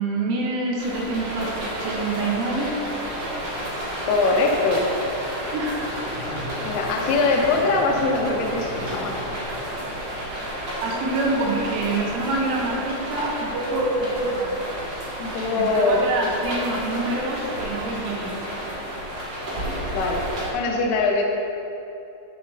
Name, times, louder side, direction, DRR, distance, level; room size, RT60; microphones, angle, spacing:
voice 1, 0.0-2.7 5.5-6.1 10.3-14.6 15.6-18.4, right 2 dB, 75° right, -2 dB, 3.3 m, -26 dB
sound 1, 0.8-20.5, equal, 55° right, 2.0 m, -31 dB
voice 2, 4.0-4.9 6.6-9.2 15.2-16.0 19.9-20.3 20.5-21.2, left 3 dB, 85° left, 1 dB, 3.4 m, -22 dB
Mechanisms, 4.8-10.0, equal, 50° left, 1.9 m, -37 dB
13.0 x 7.1 x 2.7 m, 2.8 s
omnidirectional pair, 5.8 m